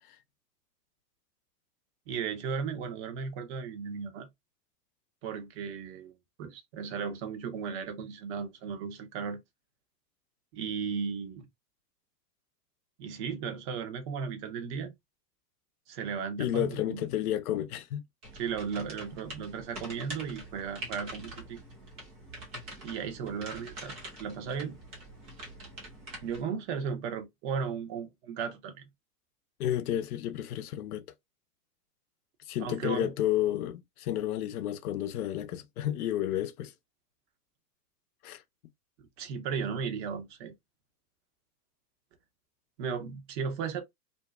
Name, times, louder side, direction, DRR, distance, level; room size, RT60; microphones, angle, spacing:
voice 1, 2.1-4.3 5.2-6.1 6.4-9.4 10.5-11.5 13.0-14.9 15.9-17.0 18.3-21.6 22.8-23.9 24.2-24.8 26.2-28.7 32.6-33.1 39.0-40.5 42.8-43.8, right 6 dB, 45° right, 0.8 m, -35 dB
voice 2, 16.4-18.0 29.6-31.1 32.5-36.7 38.2-38.4, left 12 dB, 65° left, 0.6 m, -31 dB
sound 1, 18.2-26.4, right 1 dB, 15° right, 0.3 m, -45 dB
2.7 x 2.1 x 2.2 m
hypercardioid pair, 115°, 49 cm